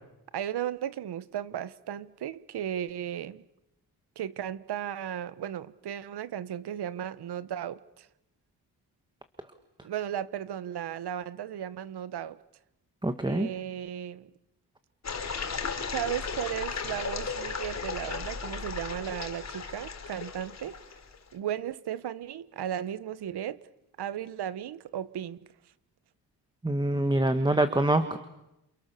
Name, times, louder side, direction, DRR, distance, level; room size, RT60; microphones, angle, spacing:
voice 1, 0.3-3.4 4.2-8.1 9.8-12.4 13.3-14.3 15.9-20.8 21.3-23.6 24.0-25.4, right 10 dB, 70° right, 1.2 m, -35 dB
voice 2, 13.0-13.5 26.6-28.2, right 1 dB, 10° right, 1.5 m, -25 dB
sound 1, 15.0-21.2, left 5 dB, 40° left, 3.6 m, -35 dB
29.0 x 28.5 x 6.8 m
wide cardioid pair, 140°, 40 cm